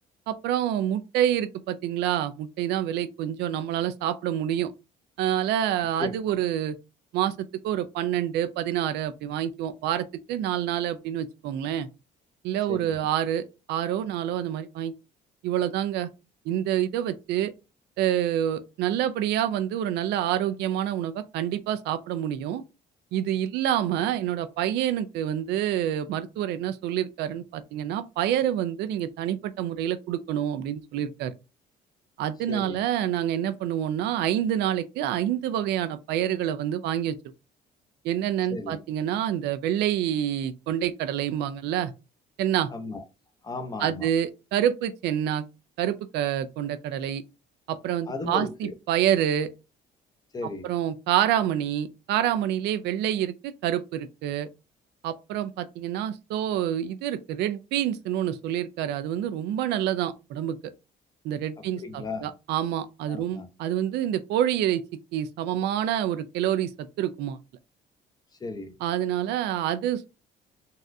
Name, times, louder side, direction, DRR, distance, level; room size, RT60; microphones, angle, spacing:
voice 1, 0.3-4.7 5.2-6.8 7.1-11.9 12.4-14.9 15.4-16.1 16.5-17.5 18.0-22.6 23.1-31.3 32.2-37.1 38.0-41.9 42.4-42.7 43.8-45.4 45.8-47.2 47.7-49.5 50.6-54.5 55.0-60.7 61.2-64.8 65.1-66.7 67.0-67.4 68.8-70.1, right 11 dB, 80° right, 0.4 m, -27 dB
voice 2, 12.7-13.1 32.5-32.8 38.5-38.8 42.7-43.0 43.4-44.1 48.1-48.7 50.3-50.7 61.8-62.3 63.1-63.5 68.4-68.7, left 3 dB, 25° left, 0.7 m, -35 dB
4.0 x 2.4 x 2.6 m
cardioid pair, 110°, 17 cm